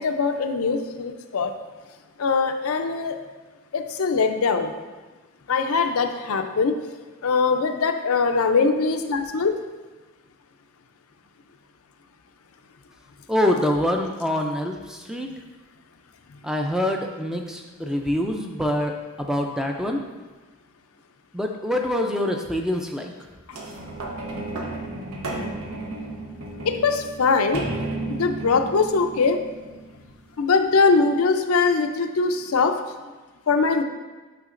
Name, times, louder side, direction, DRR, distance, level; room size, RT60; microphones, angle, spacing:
voice 1, 0.0-1.5 2.2-3.2 3.7-4.7 5.5-6.7 7.2-9.5 26.6-27.6 28.1-29.4 30.4-32.7 33.5-33.8, left 4 dB, 80° left, 6 dB, 0.5 m, -21 dB
voice 2, 13.3-15.3 16.4-20.0 21.3-23.1, left 1 dB, 5° right, 2 dB, 0.4 m, -25 dB
sound 1, 23.5-30.3 30.9-31.0, right 2 dB, 85° right, 1.0 m, -33 dB
9.2 x 5.7 x 2.5 m, 1.3 s
head